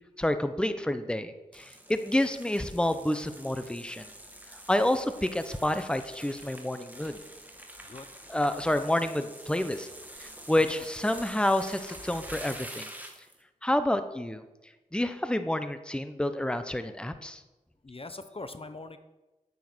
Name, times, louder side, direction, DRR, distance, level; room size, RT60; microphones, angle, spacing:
voice 1, 0.2-4.1 4.7-7.2 8.3-9.9 10.2-12.9 13.6-14.4 14.9-17.4, left 1 dB, 5° left, 10 dB, 0.9 m, -29 dB
sound 1, 1.5-13.4, right 1 dB, 10° right, 2.0 m, -46 dB
voice 2, 17.8-19.0, left 2 dB, 40° left, 10 dB, 0.9 m, -42 dB
9.6 x 9.2 x 6.2 m, 1.1 s
cardioid pair, 45°, 14 cm